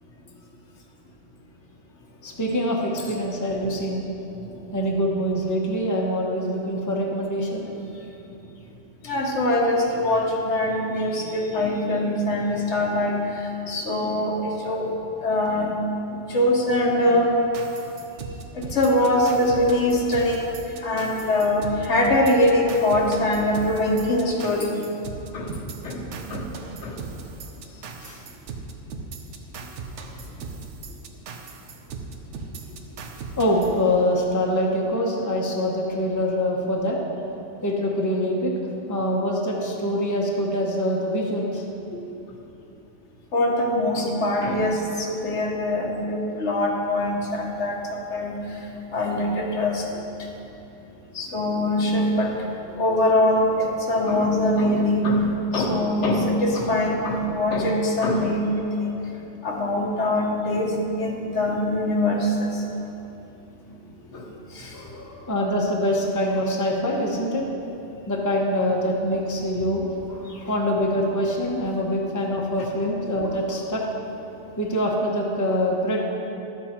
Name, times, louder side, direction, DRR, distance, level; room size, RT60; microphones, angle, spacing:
voice 1, 2.2-4.0 4.7-7.6 28.0-28.2 33.4-37.0 37.6-38.5 38.9-41.6 64.7-67.4 68.1-73.9 74.6-76.0, equal, 15° left, -1 dB, 1.0 m, -24 dB
voice 2, 9.0-13.2 13.7-14.9 15.2-15.7 16.3-17.3 18.6-20.4 20.8-24.7 25.3-25.5 25.8-26.0 26.3-26.4 26.8-26.9 41.9-42.0 43.3-44.8 45.1-47.8 48.1-48.4 48.9-49.8 51.1-52.4 52.8-55.2 55.5-58.9 59.4-60.7 61.0-62.5 64.1-64.2 64.6-64.7, left 1 dB, 70° left, 0 dB, 1.5 m, -22 dB
sound 1, 17.5-34.4, right 4 dB, 75° right, 1.0 m, -38 dB
11.5 x 7.4 x 4.4 m, 2.9 s
omnidirectional pair, 1.2 m